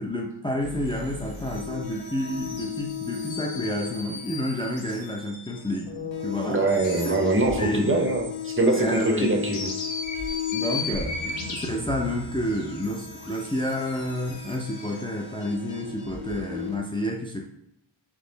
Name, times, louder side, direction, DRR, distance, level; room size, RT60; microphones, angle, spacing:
voice 1, 0.0-6.6 7.0-7.1 7.6-7.9 8.8-9.6 10.5-17.5, equal, 10° left, -1 dB, 0.6 m, -30 dB
sound 1, 0.6-16.8, left 6 dB, 90° left, 1.0 m, -34 dB
voice 2, 6.3-9.7, right 2 dB, 30° right, 2 dB, 1.0 m, -23 dB
4.0 x 3.0 x 4.0 m, 0.79 s
cardioid pair, 65°, 44 cm